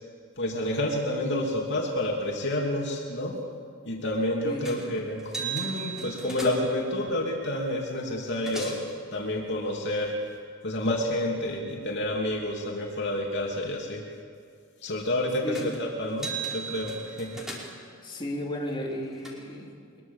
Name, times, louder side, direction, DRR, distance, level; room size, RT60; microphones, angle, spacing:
voice 1, 0.4-3.4 3.8-8.8 9.1-10.2 10.6-14.0 14.8-17.4, left 1 dB, 60° left, -1 dB, 2.9 m, -29 dB
voice 2, 4.4-4.9 15.4-15.8 18.0-20.0, equal, 25° left, -3 dB, 4.0 m, -34 dB
sound 1, 4.6-4.9 5.2-6.8 7.8-7.9 8.2-8.9 15.5-15.8 16.1-17.9 18.7-19.3, right 4 dB, ahead, 5.0 m, -37 dB
24.0 x 22.0 x 7.3 m, 2.3 s
head